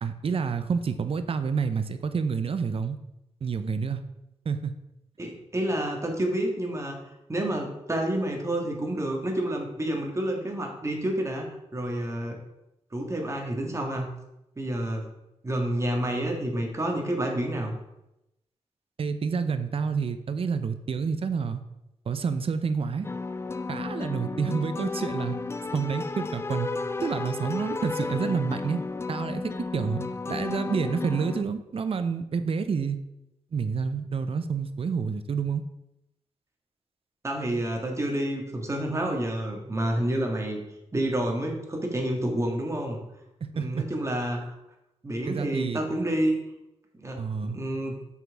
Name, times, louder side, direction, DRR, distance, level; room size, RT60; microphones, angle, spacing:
voice 1, 0.0-3.0 3.4-4.0 4.5-4.7 19.0-21.6 22.1-23.1 23.7-25.4 25.7-26.7 27.0-28.8 29.1-29.4 29.7-33.0 33.5-35.6 43.4-43.8 45.3-45.8 47.2-47.6, right 5 dB, 55° right, 10 dB, 0.6 m, -28 dB
voice 2, 5.2-7.0 7.3-11.5 11.7-12.4 12.9-14.1 14.6-15.1 15.4-17.7 37.2-40.6 40.9-43.0 43.5-44.6 45.0-46.4 46.9-48.0, right 1 dB, 25° right, 1 dB, 1.6 m, -29 dB
sound 1, 23.0-31.4, left 3 dB, 25° left, 0.4 m, -33 dB
6.0 x 5.7 x 4.6 m, 0.89 s
wide cardioid pair, 95°, 11 cm